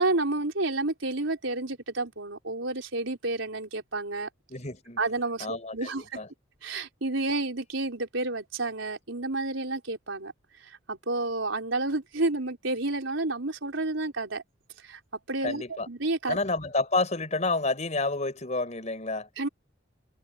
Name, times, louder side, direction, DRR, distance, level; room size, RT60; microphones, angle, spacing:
voice 1, 0.0-4.3 5.0-6.2 6.6-10.3 10.6-14.4 14.8-15.0 15.3-16.4 19.4-19.5, right 2 dB, 80° right, 4.3 m, -30 dB
voice 2, 4.5-5.0 5.4-6.3 15.4-15.9 16.2-19.3, left 3 dB, 35° left, 4.8 m, -29 dB
head